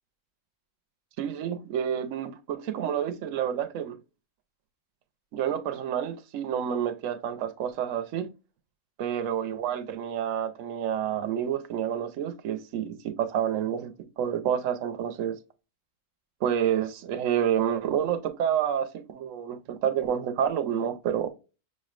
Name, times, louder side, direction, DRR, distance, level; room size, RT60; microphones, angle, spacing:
voice 1, 1.2-4.0 5.3-8.3 9.0-15.4 16.4-21.3, right 9 dB, 75° right, 1.0 m, -29 dB
6.4 x 3.1 x 2.4 m
omnidirectional pair, 1.4 m